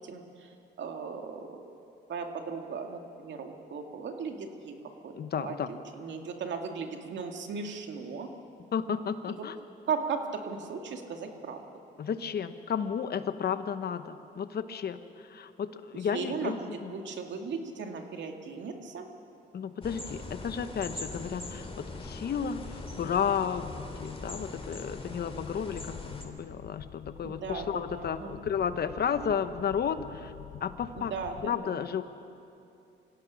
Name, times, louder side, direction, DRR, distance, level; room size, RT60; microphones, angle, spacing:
voice 1, 0.0-1.8 2.1-4.7 5.0-8.3 9.3-9.4 9.9-11.6 15.9-16.6 16.9-19.1 27.2-28.4 30.9-31.8, right 5 dB, 65° right, 3 dB, 2.2 m, -37 dB
voice 2, 5.2-5.7 8.7-9.5 12.0-15.0 15.3-16.9 19.5-22.6 23.0-30.3 30.6-31.1 31.4-32.0, left 7 dB, 55° left, 10 dB, 1.1 m, -32 dB
sound 1, 19.8-26.2, left 2 dB, 30° left, 2.8 m, -41 dB
sound 2, 25.7-31.5, left 9 dB, 75° left, 1.0 m, -47 dB
25.5 x 16.5 x 6.3 m, 2.6 s
cardioid pair, 90°, 20 cm